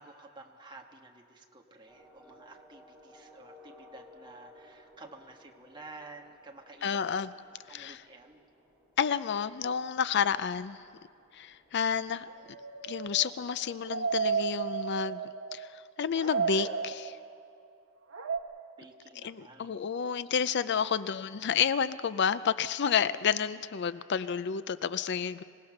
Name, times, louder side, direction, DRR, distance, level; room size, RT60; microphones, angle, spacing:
voice 1, 0.0-7.3 7.7-8.4 18.8-19.7 20.8-21.1, right 2 dB, 20° right, 2 dB, 1.6 m, -51 dB
sound 1, 1.9-15.0, left 1 dB, 5° right, 4.7 m, -59 dB
voice 2, 6.8-7.3 7.7-8.0 9.0-10.8 11.3-12.3 12.8-15.2 15.5-17.2 19.2-25.4, left 7 dB, 55° left, 15 dB, 0.5 m, -30 dB
sound 2, 12.2-15.8 16.1-17.5 18.1-18.4, right 5 dB, 80° right, 1.2 m, -33 dB
26.0 x 17.5 x 6.6 m, 2.3 s
head